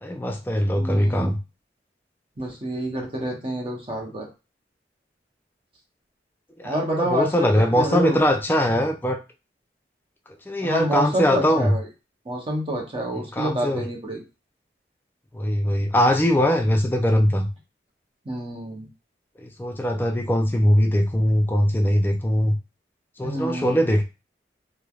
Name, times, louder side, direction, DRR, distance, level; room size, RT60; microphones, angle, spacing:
voice 1, 0.0-1.4 6.6-9.2 10.5-11.7 13.1-13.8 15.3-17.5 19.4-22.6 23.2-24.0, equal, 10° left, 3 dB, 0.3 m, -21 dB
voice 2, 0.7-1.4 2.4-4.3 6.6-8.2 10.6-11.9 12.3-14.2 18.2-18.9 23.2-23.8, right 1 dB, 30° right, -1 dB, 0.7 m, -28 dB
3.2 x 2.1 x 2.3 m, 0.29 s
head